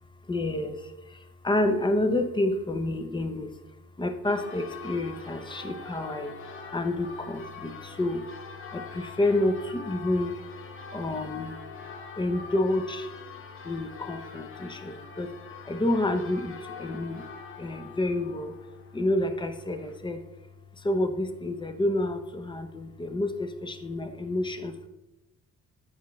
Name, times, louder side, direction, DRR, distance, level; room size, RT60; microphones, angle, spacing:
voice 1, 0.3-0.8 1.4-3.5 4.0-6.3 6.7-8.2 8.7-10.3 10.9-11.6 12.2-13.1 13.6-15.3 15.7-17.2 17.6-18.5 18.9-20.2 20.8-24.9, left 1 dB, 15° left, 8 dB, 0.6 m, -29 dB
Church bell, 4.2-20.0, left 5 dB, 45° left, 0.8 m, -44 dB
8.2 x 4.8 x 3.1 m, 0.99 s
cardioid pair, 100°, 29 cm